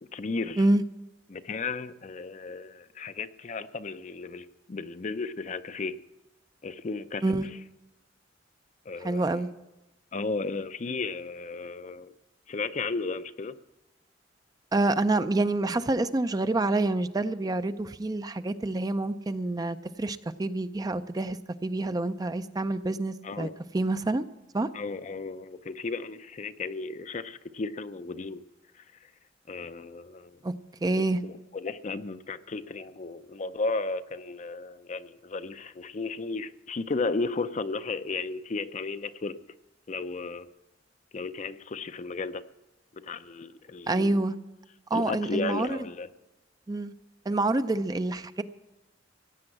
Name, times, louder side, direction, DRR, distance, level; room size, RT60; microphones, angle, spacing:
voice 1, 0.1-0.6 1.3-5.9 6.6-7.2 8.9-9.3 10.1-12.1 12.5-13.6 23.2-23.5 24.7-28.4 29.5-30.4 30.9-39.4 39.9-40.5 41.1-42.4 42.9-44.2 44.9-46.1, left 3 dB, 40° left, 12 dB, 0.5 m, -34 dB
voice 2, 9.0-9.5 14.7-23.5 23.7-24.3 24.5-24.7 30.4-30.5 30.8-31.2 43.9-44.4 44.9-45.9 46.7-46.9 47.3-48.4, right 2 dB, 20° right, 11 dB, 0.4 m, -27 dB
15.5 x 8.7 x 7.7 m, 1.0 s
head